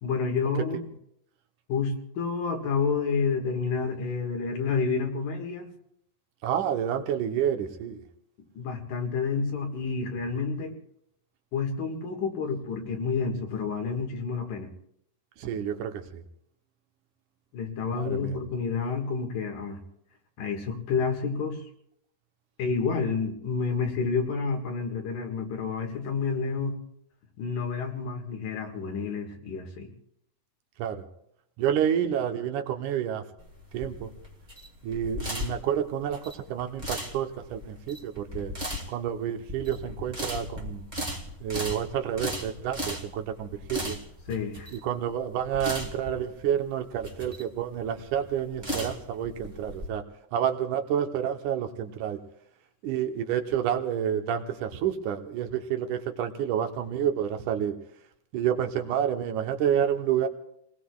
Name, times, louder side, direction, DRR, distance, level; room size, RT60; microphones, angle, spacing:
voice 1, 0.0-0.9 1.7-5.7 8.6-10.7 11.5-14.7 17.5-19.8 20.4-21.6 22.6-26.8 27.4-29.9 44.3-44.7, left 5 dB, 80° left, 2 dB, 3.5 m, -29 dB
voice 2, 6.4-8.0 15.4-16.2 17.9-18.4 30.8-31.1 31.6-33.2 33.7-34.1 34.8-38.5 38.9-40.8 41.4-44.0 44.7-50.0 50.3-52.2 52.8-57.8 58.3-60.3, right 9 dB, 75° right, 5 dB, 2.5 m, -29 dB
sound 1, 33.4-49.9, equal, 20° right, 1.2 m, -37 dB
29.5 x 19.5 x 2.4 m, 0.75 s
omnidirectional pair, 3.7 m